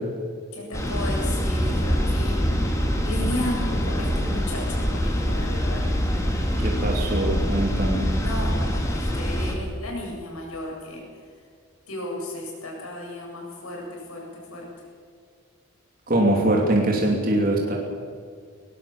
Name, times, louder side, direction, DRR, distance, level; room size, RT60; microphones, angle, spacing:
voice 1, 0.5-2.5 3.0-5.9 8.2-11.0 11.9-14.7, left 1 dB, 85° left, -1 dB, 7.6 m, -34 dB
sound 1, 0.7-9.5, equal, 15° left, 2.7 m, -24 dB
voice 2, 6.6-8.1 16.1-17.8, right 1 dB, 40° right, -1 dB, 2.9 m, -22 dB
20.0 x 17.5 x 7.3 m, 2.1 s
head